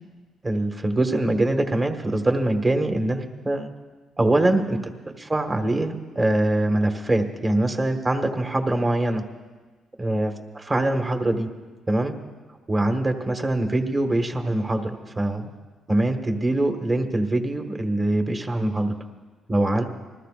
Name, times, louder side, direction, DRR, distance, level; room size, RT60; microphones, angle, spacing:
voice 1, 0.4-3.7 4.2-9.2 10.0-11.5 11.9-12.2 12.7-15.5 15.9-18.9 19.5-19.8, right 1 dB, 20° right, 5 dB, 1.6 m, -23 dB
28.0 x 20.5 x 2.5 m, 1.4 s
cardioid pair, 90°, 0 cm